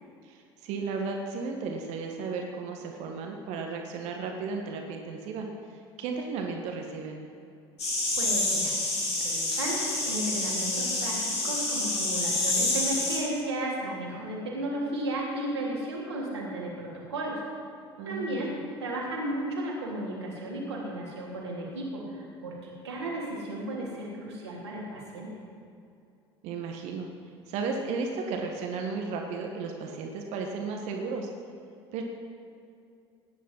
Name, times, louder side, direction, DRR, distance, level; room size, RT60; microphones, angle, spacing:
voice 1, 0.2-7.2 18.0-18.6 26.4-27.1 27.5-31.3 31.9-32.0, right 4 dB, 55° right, 2 dB, 1.7 m, -34 dB
sound 1, 7.8-13.2, left 2 dB, 80° left, 4.0 m, -28 dB
voice 2, 8.2-17.4 18.0-18.5 18.8-25.3, right 1 dB, 80° right, -4 dB, 3.6 m, -34 dB
17.5 x 10.5 x 5.6 m, 2.5 s
figure-of-eight pair, 65°, 14 cm